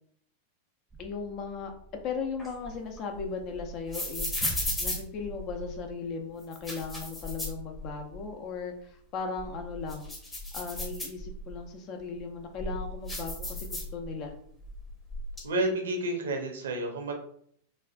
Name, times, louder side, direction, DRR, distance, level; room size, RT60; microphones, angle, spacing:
sound 1, 0.9-6.0, right 1 dB, 10° right, 0.5 m, -47 dB
voice 1, 1.0-1.7 2.0-10.1 10.5-14.4, left 5 dB, 35° left, 4 dB, 0.5 m, -37 dB
sound 2, 2.4-5.8 6.4-8.2 8.6-8.7 9.2-11.6 12.2-14.3 14.6-15.4, left 1 dB, 15° left, 0.9 m, -36 dB
voice 2, 15.4-17.1, right 1 dB, 65° right, 3 dB, 0.7 m, -30 dB
4.1 x 2.4 x 2.4 m, 0.64 s
figure-of-eight pair, 90°, 0 cm